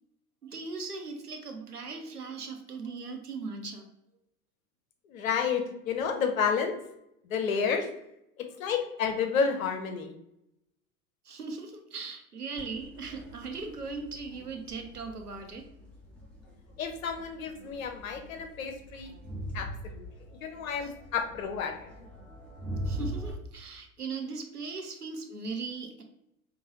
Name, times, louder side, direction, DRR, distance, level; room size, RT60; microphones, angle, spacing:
voice 1, 0.4-3.9 11.2-15.6 20.8-20.9 22.8-26.0, right 4 dB, 90° right, 4 dB, 0.6 m, -39 dB
voice 2, 5.1-6.8 7.2-7.9 8.4-10.2 16.8-19.1 19.5-20.1 20.4-21.9, left 6 dB, 65° left, 5 dB, 0.7 m, -30 dB
Crowd, 12.6-23.3, equal, 5° left, 0.3 m, -42 dB
4.8 x 2.2 x 2.8 m, 0.83 s
figure-of-eight pair, 80°, 45 cm